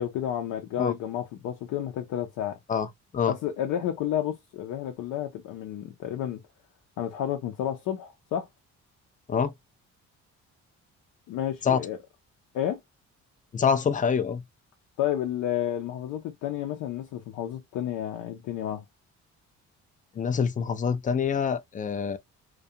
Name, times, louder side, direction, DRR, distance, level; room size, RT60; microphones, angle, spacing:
voice 1, 0.0-2.6 3.3-6.4 7.0-8.5 11.3-12.0 12.5-12.8 15.0-18.8, left 11 dB, 90° left, 0.6 m, -31 dB
voice 2, 13.5-14.4 20.2-22.2, left 6 dB, 25° left, 0.4 m, -25 dB
2.4 x 2.2 x 2.7 m
cardioid pair, 90°, 30 cm